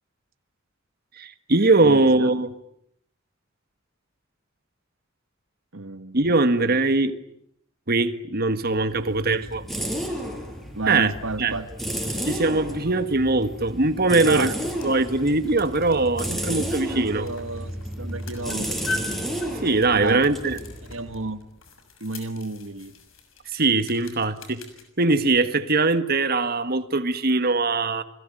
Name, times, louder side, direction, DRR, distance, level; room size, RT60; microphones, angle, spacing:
voice 1, 1.2-2.5 6.1-7.1 7.9-9.6 10.9-11.1 11.4-11.5 12.2-14.5 14.8-17.3 19.6-20.6 23.5-24.6 25.0-28.0, right 3 dB, 50° right, 10 dB, 1.7 m, -21 dB
voice 2, 1.8-2.3 5.7-6.2 6.6-6.8 10.8-11.7 14.2-14.5 16.9-19.0 19.9-20.2 20.8-21.4 22.0-22.9, right 3 dB, 80° right, 10 dB, 1.6 m, -31 dB
sound 1, 8.7-21.4, equal, ahead, 6.5 m, -32 dB
sound 2, 14.4-24.9, left 3 dB, 85° left, 6.5 m, -41 dB
29.5 x 21.5 x 9.2 m, 0.71 s
head